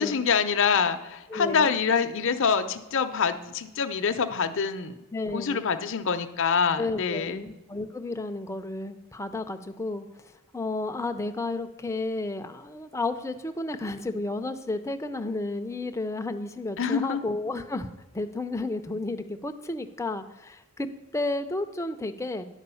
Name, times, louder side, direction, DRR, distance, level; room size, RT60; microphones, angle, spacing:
voice 1, 0.0-5.0 5.3-7.4 16.8-17.2, left 6 dB, 60° left, 8 dB, 0.6 m, -25 dB
voice 2, 1.3-1.7 5.1-5.7 6.8-17.9 18.1-22.5, left 2 dB, 15° left, 7 dB, 0.5 m, -32 dB
10.5 x 4.7 x 6.9 m, 1.0 s
head